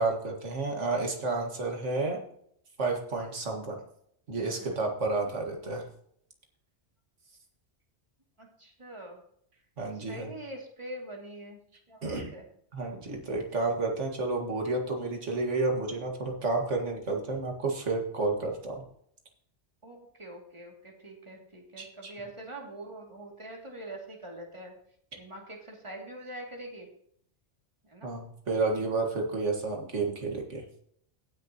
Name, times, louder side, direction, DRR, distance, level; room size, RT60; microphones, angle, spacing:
voice 1, 0.0-2.2 2.8-3.8 4.3-5.8 9.8-10.3 12.0-12.3 12.7-18.8 21.8-22.1 28.0-30.6, right 3 dB, 85° right, 1 dB, 2.1 m, -31 dB
voice 2, 4.6-4.9 8.4-9.2 10.0-11.6 11.9-12.4 19.8-24.7 25.2-26.9 27.8-28.1, right 1 dB, 25° right, -1 dB, 2.5 m, -44 dB
17.5 x 6.6 x 2.9 m, 0.67 s
omnidirectional pair, 1.2 m